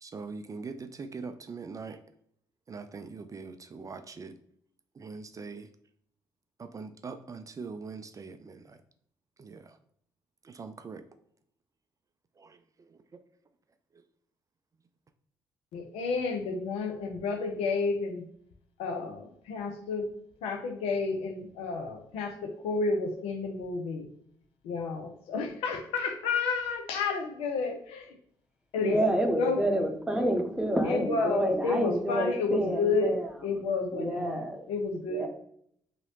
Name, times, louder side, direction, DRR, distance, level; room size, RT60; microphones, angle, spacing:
voice 1, 0.0-2.0 2.7-4.3 5.0-5.7 6.6-8.8 9.4-9.8 10.4-11.0 12.4-12.9, right 4 dB, 35° right, 9 dB, 0.4 m, -42 dB
voice 2, 15.7-18.2 18.8-20.1 20.4-24.1 24.6-28.2 28.7-29.8 30.8-33.1 33.4-35.3, left 4 dB, 75° left, 5 dB, 0.6 m, -31 dB
voice 3, 28.8-33.2 33.9-34.6 35.1-35.3, right 1 dB, 10° right, 3 dB, 0.8 m, -28 dB
2.9 x 2.8 x 2.8 m, 0.66 s
hypercardioid pair, 45°, 10 cm